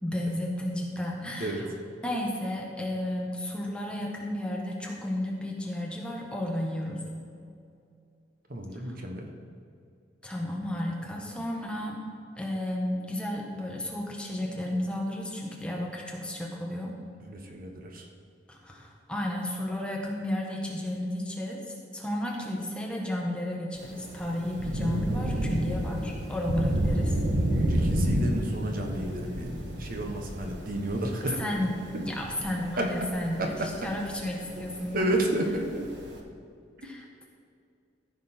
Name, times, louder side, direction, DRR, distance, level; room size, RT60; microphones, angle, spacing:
voice 1, 0.0-1.7 2.0-7.0 8.9-9.0 10.2-12.0 12.4-16.9 18.5-21.6 21.9-27.1 31.4-33.4 33.8-35.2 36.8-37.3, left 1 dB, 5° left, -2 dB, 1.4 m, -33 dB
voice 2, 8.5-9.3 17.2-18.0 27.6-29.5 29.8-31.4 32.8-32.9 33.4-33.7 34.9-35.9, right 1 dB, 50° right, 2 dB, 1.2 m, -31 dB
Thunder / Rain, 23.8-36.2, equal, 70° right, 1.3 m, -30 dB
14.5 x 6.1 x 4.5 m, 2.4 s
head